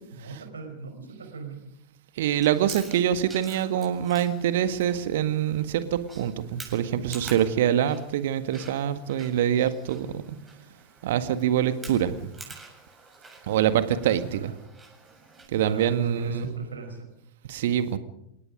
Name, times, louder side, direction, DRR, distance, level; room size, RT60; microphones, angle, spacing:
voice 1, 0.1-1.6 14.2-14.6 15.5-17.1, right 3 dB, 70° right, 6 dB, 5.0 m, -39 dB
voice 2, 2.2-10.4 11.0-12.1 13.5-14.5 15.5-16.5 17.5-18.0, right 10 dB, 55° right, 11 dB, 1.7 m, -25 dB
Chewing mastication, 2.4-15.5, right 3 dB, 10° right, 7.6 m, -48 dB
29.5 x 18.0 x 5.3 m, 0.80 s
figure-of-eight pair, 90°, 0 cm